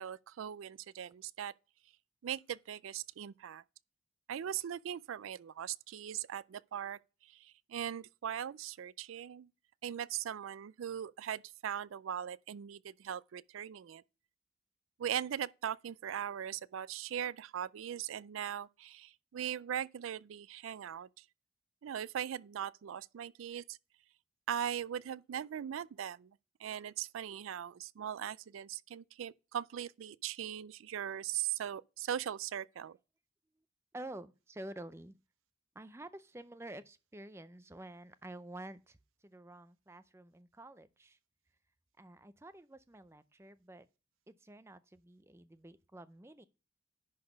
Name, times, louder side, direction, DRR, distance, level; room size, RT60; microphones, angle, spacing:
voice 1, 0.0-1.5 2.2-3.6 4.3-7.0 7.3-9.5 9.8-14.0 15.0-21.1 21.8-23.8 24.5-26.3 26.6-33.0, right 9 dB, 90° right, 0.4 m, -40 dB
voice 2, 33.9-35.1 35.8-39.0 39.2-41.2 42.0-43.9 44.3-46.4, right 1 dB, 15° right, 0.5 m, -49 dB
10.5 x 4.0 x 5.2 m
head